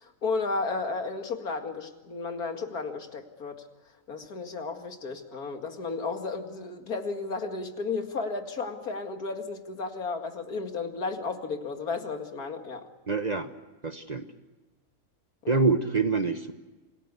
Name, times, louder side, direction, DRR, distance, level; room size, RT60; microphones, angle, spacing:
voice 1, 0.0-3.6 4.1-12.9 15.4-15.6, left 4 dB, 75° left, 5 dB, 2.6 m, -33 dB
voice 2, 13.1-13.5 13.8-14.3 15.5-16.5, right 4 dB, 30° right, 8 dB, 1.2 m, -25 dB
27.5 x 18.0 x 8.3 m, 1.2 s
omnidirectional pair, 1.6 m